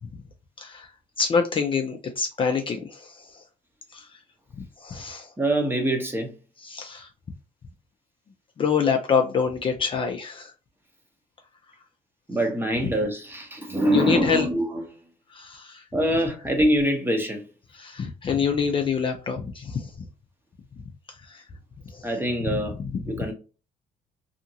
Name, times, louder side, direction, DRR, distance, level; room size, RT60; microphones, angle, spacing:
voice 1, 0.6-0.9 1.2-3.4 3.9-4.1 4.8-5.3 6.6-7.1 8.6-10.5 12.8-12.9 13.9-14.5 15.3-15.8 17.7-19.9 21.1-21.4 21.9-22.1 22.4-23.2, left 6 dB, 30° left, 0.4 m, -26 dB
voice 2, 5.4-6.3 12.3-14.8 15.9-17.4 22.0-22.7 23.1-23.3, right 1 dB, 15° right, 0.8 m, -24 dB
2.8 x 2.5 x 2.7 m
cardioid pair, 110°, 17 cm